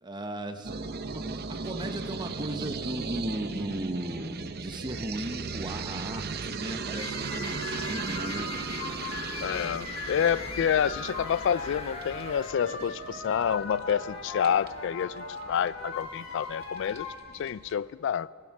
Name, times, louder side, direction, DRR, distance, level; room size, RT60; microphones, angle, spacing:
voice 1, 0.0-8.5, right 1 dB, 20° right, 0.9 m, -36 dB
sound 1, 0.6-17.7, right 4 dB, 50° right, 0.7 m, -38 dB
sound 2, 6.9-17.1, left 4 dB, 85° left, 2.1 m, -39 dB
sound 3, 7.2-12.5, left 2 dB, 30° left, 1.1 m, -45 dB
voice 2, 9.4-17.1 17.3-18.3, left 8 dB, 60° left, 0.3 m, -28 dB
16.5 x 14.5 x 5.9 m
head